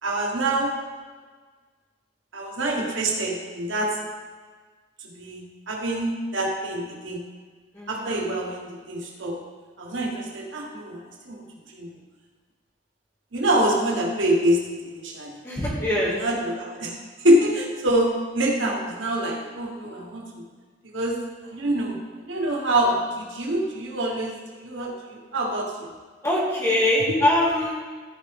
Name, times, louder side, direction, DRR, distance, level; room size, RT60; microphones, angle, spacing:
voice 1, 0.0-0.7 2.3-4.0 5.0-7.2 7.9-9.3 9.8-11.4 11.7-11.9 13.3-14.6 14.9-15.3 16.2-16.9 17.2-20.2 20.9-21.2 21.5-22.0 22.3-24.3 24.6-25.9, right 1 dB, 85° right, -1 dB, 1.6 m, -25 dB
voice 2, 7.7-8.2 15.4-16.2 26.2-27.7, left 1 dB, 15° left, -6 dB, 2.2 m, -23 dB
14.0 x 4.8 x 3.6 m, 1.5 s
head